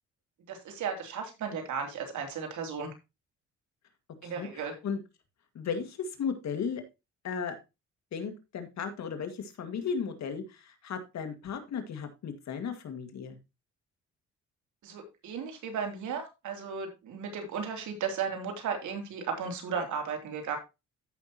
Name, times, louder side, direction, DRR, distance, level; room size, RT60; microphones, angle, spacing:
voice 1, 0.5-2.9 4.2-4.8 14.8-20.6, right 6 dB, 75° right, 4 dB, 3.0 m, -35 dB
voice 2, 4.2-5.0 5.5-6.8 7.2-7.6 8.1-13.4, left 6 dB, 65° left, 7 dB, 2.0 m, -35 dB
14.5 x 5.7 x 2.9 m, 0.25 s
cardioid pair, 90°, 30 cm